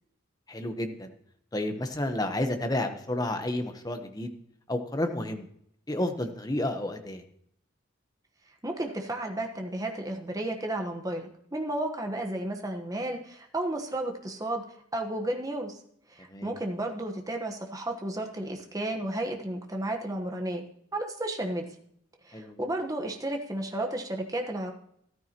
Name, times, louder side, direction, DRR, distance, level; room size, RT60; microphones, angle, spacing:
voice 1, 0.5-1.1 1.5-4.3 4.7-5.5 5.9-7.2 16.3-16.5 22.3-22.6, left 1 dB, 20° left, 7 dB, 1.0 m, -31 dB
voice 2, 8.6-14.6 14.9-15.8 16.1-20.6 20.9-21.6 22.2-24.7, right 1 dB, 15° right, 3 dB, 1.2 m, -33 dB
14.0 x 12.5 x 3.0 m, 0.69 s
head